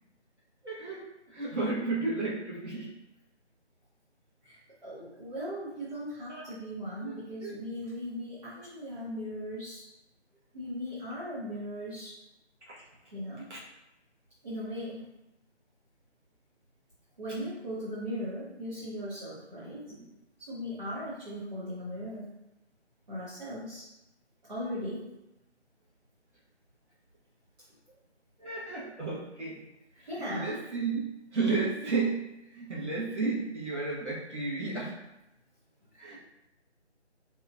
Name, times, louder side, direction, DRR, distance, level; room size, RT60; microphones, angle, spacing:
voice 1, 0.6-3.0 6.3-6.5 7.0-7.2 7.4-7.6 8.6-8.7 12.6-12.8 13.5-13.6 19.9-20.0 28.4-29.6 30.0-35.0 36.0-36.2, right 3 dB, 75° right, -6 dB, 1.1 m, -33 dB
voice 2, 4.4-9.8 10.5-12.1 13.1-13.5 14.4-15.1 17.2-19.8 20.4-22.4 23.1-23.8 24.5-25.1 30.1-30.5, equal, 40° right, -10 dB, 0.7 m, -38 dB
2.8 x 2.3 x 2.4 m, 0.90 s
figure-of-eight pair, 160°, 35 cm